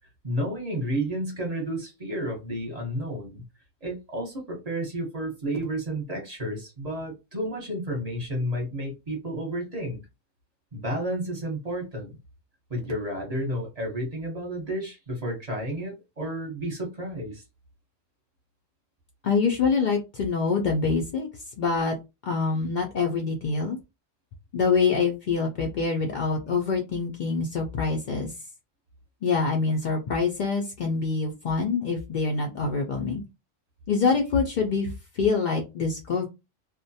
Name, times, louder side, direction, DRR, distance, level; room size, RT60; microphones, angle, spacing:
voice 1, 0.2-3.4 3.8-10.0 10.7-12.1 12.7-17.4, right 1 dB, 35° right, 0.8 m, -31 dB
voice 2, 19.2-21.3 21.6-22.0 22.3-23.8 24.5-28.3 29.2-33.2 33.9-36.3, left 4 dB, 70° left, 0.4 m, -25 dB
2.4 x 2.1 x 2.6 m
omnidirectional pair, 1.3 m